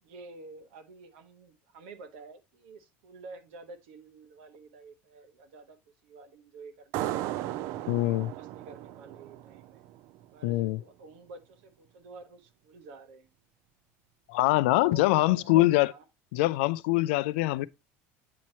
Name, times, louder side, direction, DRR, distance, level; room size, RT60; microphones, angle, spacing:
voice 1, 0.0-5.8 6.0-7.3 8.2-9.8 10.3-13.3 14.7-16.0, right 3 dB, 85° right, 1.2 m, -49 dB
sound 1, 6.9-10.2, right 14 dB, 50° right, 0.3 m, -36 dB
voice 2, 7.9-8.3 10.4-10.8 14.3-15.9 16.3-17.7, left 18 dB, 80° left, 0.3 m, -24 dB
8.5 x 3.1 x 4.3 m
cardioid pair, 175°, 6 cm